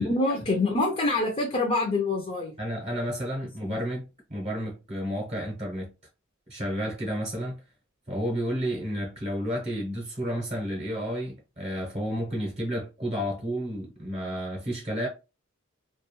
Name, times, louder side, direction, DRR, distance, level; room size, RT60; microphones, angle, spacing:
voice 1, 0.0-2.5 3.7-3.8, left 2 dB, 30° left, 0.5 m, -26 dB
voice 2, 2.6-5.9 6.5-7.6 8.1-15.1, equal, 30° right, 0.8 m, -31 dB
2.3 x 2.3 x 2.9 m
head